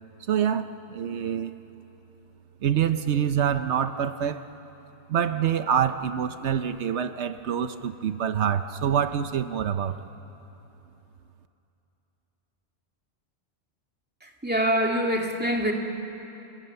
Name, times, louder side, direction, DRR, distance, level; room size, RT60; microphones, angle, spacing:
voice 1, 0.3-1.5 2.6-4.5 5.1-10.0, right 8 dB, 80° right, 10 dB, 1.1 m, -26 dB
voice 2, 14.2-15.7, equal, 10° right, 1 dB, 2.3 m, -25 dB
29.5 x 27.5 x 6.9 m, 2.9 s
omnidirectional pair, 1.1 m